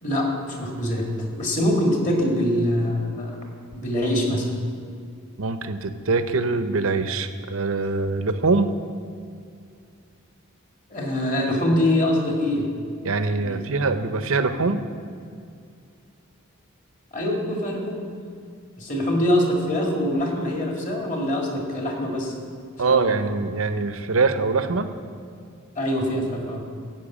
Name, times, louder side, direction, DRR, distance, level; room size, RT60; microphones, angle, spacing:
voice 1, 0.6-1.0 1.4-3.4 3.7-4.4 10.9-12.7 13.3-13.6 17.1-18.1 18.8-22.3 22.8-23.1 25.8-26.6, left 1 dB, 35° left, 0 dB, 2.0 m, -24 dB
voice 2, 5.4-8.7 13.0-14.8 22.8-24.9, right 3 dB, 70° right, 10 dB, 0.7 m, -23 dB
13.5 x 5.8 x 8.5 m, 2.4 s
head